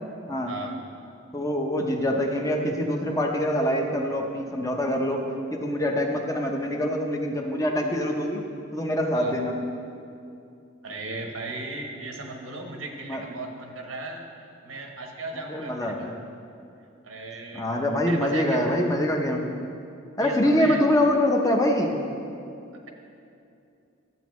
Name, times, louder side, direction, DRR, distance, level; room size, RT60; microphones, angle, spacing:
voice 1, 1.3-5.2 5.5-8.4 8.7-9.6 13.1-13.2 15.5-16.1 17.5-19.5 20.2-22.0, left 1 dB, 15° left, 1 dB, 0.7 m, -24 dB
voice 2, 10.8-14.3 14.6-16.1 17.0-17.7 18.1-18.6 20.2-20.8, right 2 dB, 85° right, 2 dB, 1.1 m, -36 dB
12.0 x 8.0 x 3.1 m, 2.6 s
head